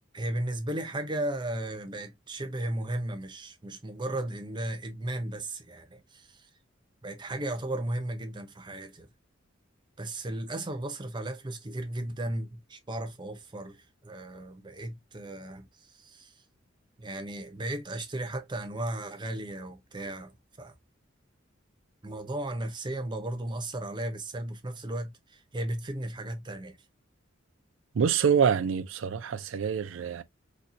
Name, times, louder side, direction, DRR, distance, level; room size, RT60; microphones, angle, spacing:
voice 1, 0.1-6.5 7.0-9.1 10.0-16.3 17.0-20.3 20.6-20.7 22.0-26.8, right 1 dB, 25° right, 0.6 m, -35 dB
voice 2, 27.9-30.2, right 7 dB, 75° right, 0.4 m, -26 dB
4.1 x 2.3 x 2.5 m
head